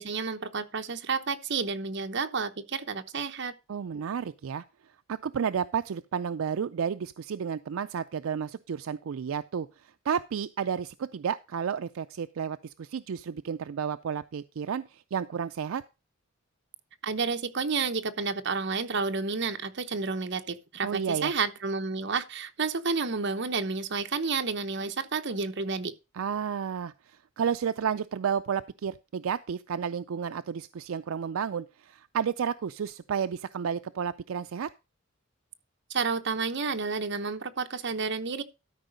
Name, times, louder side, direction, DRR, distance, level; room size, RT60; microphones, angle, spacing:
voice 1, 0.0-3.5 17.0-25.9 35.9-38.4, right 4 dB, 55° right, 0.9 m, -30 dB
voice 2, 3.7-4.6 5.1-9.7 10.1-15.8 20.8-21.3 26.1-34.7, right 7 dB, 80° right, 0.4 m, -31 dB
12.5 x 4.9 x 5.2 m
head